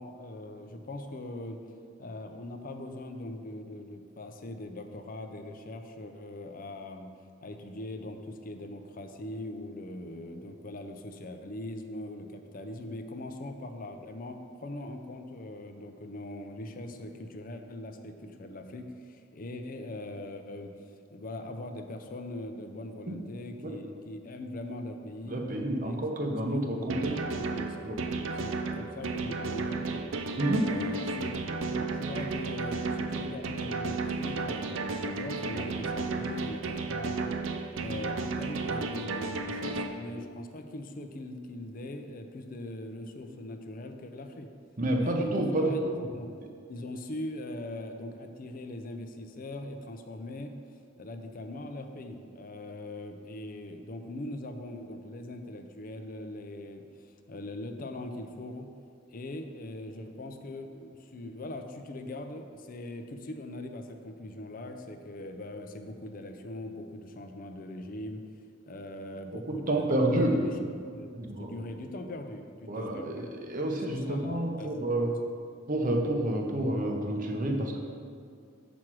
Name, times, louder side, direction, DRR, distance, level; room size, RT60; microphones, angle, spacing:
voice 1, 0.0-1.6 2.0-7.1 7.4-25.4 25.8-26.0 26.2-30.0 30.4-37.3 37.8-44.5 45.0-45.8 46.1-46.3 46.7-50.5 51.0-58.7 59.1-68.2 68.7-70.5 70.9-71.1 71.4-73.4 74.1-75.1, left 1 dB, 45° left, 6 dB, 0.5 m, -41 dB
voice 2, 25.3-27.2 27.8-28.0 30.4-30.7 44.8-46.1 69.3-70.4 71.1-71.5 72.7-75.1 75.7-77.8, right 1 dB, 40° right, 2 dB, 0.8 m, -29 dB
sound 1, 26.9-39.9, right 3 dB, 70° right, 0.5 m, -33 dB
6.1 x 4.7 x 6.0 m, 2.2 s
head